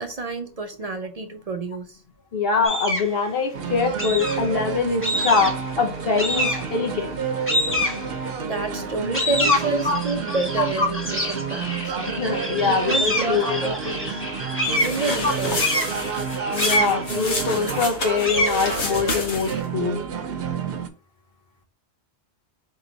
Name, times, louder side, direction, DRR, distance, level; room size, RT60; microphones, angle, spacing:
voice 1, 0.0-2.0 8.4-11.9 12.6-14.2 14.6-15.6, right 3 dB, 45° right, 0.5 m, -29 dB
voice 2, 2.3-7.1 9.1-9.6 9.8-10.0 10.3-10.9 12.2-13.6 16.5-20.0, left 4 dB, 60° left, 1.0 m, -24 dB
sound 1, 2.6-3.2 4.0-4.6 5.0-5.7 6.2-6.9 7.5-8.4 8.9-19.6, left 1 dB, 10° left, 1.1 m, -27 dB
sound 2, 3.5-20.9, right 6 dB, 65° right, 0.9 m, -30 dB
sound 3, 14.6-19.7, left 2 dB, 85° left, 1.5 m, -30 dB
4.5 x 3.0 x 3.8 m
omnidirectional pair, 1.1 m